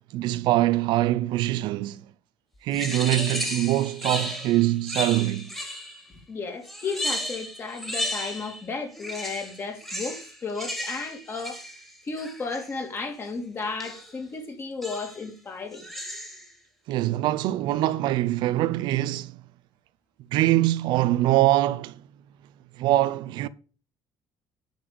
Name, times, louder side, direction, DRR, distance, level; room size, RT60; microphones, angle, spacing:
voice 1, 0.1-2.0 2.6-5.5 16.9-19.4 20.3-22.0 22.8-23.5, right 15 dB, 75° right, 0.7 m, -23 dB
sound 1, 2.7-6.1 6.6-8.6 8.9-12.8 13.8-14.2 14.8-15.3 15.7-16.5, equal, 5° left, 2.4 m, -34 dB
voice 2, 6.1-11.6 12.0-15.8, left 4 dB, 30° left, 2.9 m, -34 dB
10.5 x 5.5 x 6.9 m
cardioid pair, 145°, 8 cm